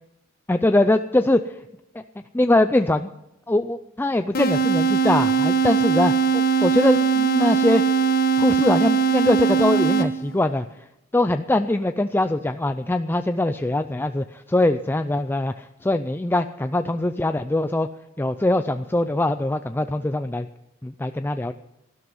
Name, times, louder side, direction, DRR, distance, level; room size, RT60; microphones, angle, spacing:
voice 1, 0.5-1.6 1.9-2.0 2.3-3.1 3.5-7.8 8.4-10.7 11.1-17.9 18.2-20.5 20.8-21.5, left 1 dB, 10° left, 9 dB, 0.4 m, -22 dB
sound 1, 4.3-10.4, right 6 dB, 50° left, 1.4 m, -20 dB
18.5 x 12.5 x 5.4 m, 0.89 s
head